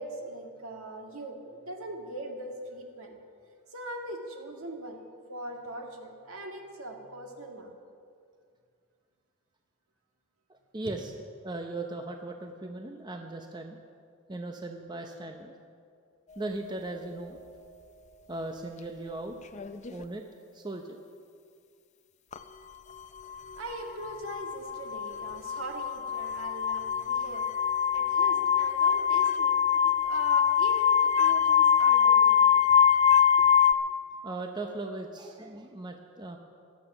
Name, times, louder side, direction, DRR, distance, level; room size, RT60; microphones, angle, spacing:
voice 1, 0.0-3.2 3.7-5.0 5.3-7.8 10.8-11.0 23.3-32.8, right 1 dB, 70° right, 2 dB, 1.9 m, -41 dB
voice 2, 10.5-11.1 11.4-13.8 14.3-15.5 16.4-17.4 18.3-19.4 19.9-20.2 20.5-21.0 34.2-36.4, right 2 dB, 20° right, 4 dB, 0.7 m, -38 dB
sound 1, 19.5-20.0 22.3-22.4 23.3-33.7, left 8 dB, 30° left, 0.5 m, -24 dB
15.5 x 11.5 x 6.0 m, 2.2 s
head